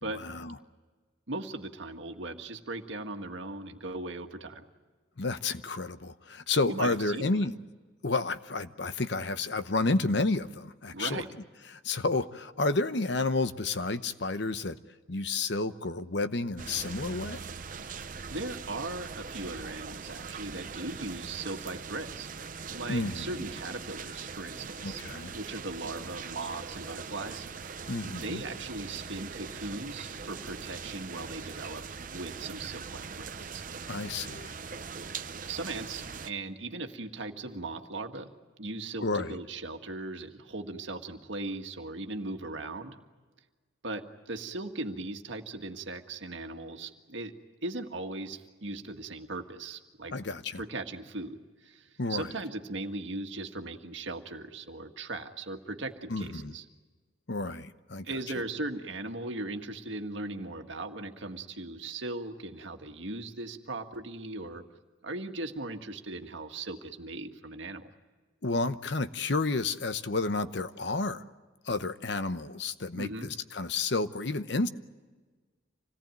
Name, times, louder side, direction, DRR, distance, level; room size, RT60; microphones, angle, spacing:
voice 1, 0.1-0.6 5.2-7.5 8.0-11.2 11.7-14.8 15.1-17.4 22.9-23.3 24.8-25.3 27.9-28.4 33.9-34.5 39.0-39.4 50.1-50.6 52.0-52.3 56.1-56.5 57.3-58.1 68.4-71.2 71.6-74.7, left 3 dB, 60° left, 11 dB, 0.9 m, -31 dB
voice 2, 1.3-4.7 6.7-7.5 10.9-11.3 18.3-25.0 25.3-31.8 32.1-33.6 35.5-38.3 38.6-43.0 43.8-47.3 47.6-50.1 50.6-56.7 58.0-64.6 65.0-67.9 72.9-73.3, right 2 dB, 70° right, 5 dB, 1.7 m, -38 dB
sound 1, 16.6-36.3, right 5 dB, 40° right, 0.8 m, -41 dB
27.0 x 18.5 x 9.0 m, 1.4 s
head